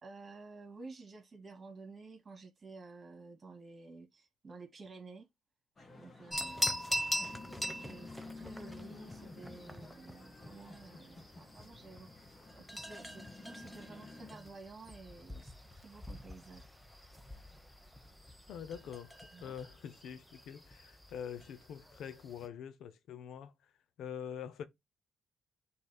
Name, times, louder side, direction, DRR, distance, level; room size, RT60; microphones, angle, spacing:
voice 1, 0.0-5.3 6.0-6.9 7.6-16.7 19.3-19.6, right 3 dB, 35° right, 2.6 m, -52 dB
sound 1, 5.8-14.4, left 3 dB, 35° left, 2.2 m, -52 dB
sound 2, 6.3-22.5, equal, 5° left, 1.0 m, -43 dB
voice 2, 18.5-23.5 24.0-24.6, left 8 dB, 75° left, 0.6 m, -45 dB
11.0 x 4.0 x 2.2 m
cardioid pair, 90°, 0 cm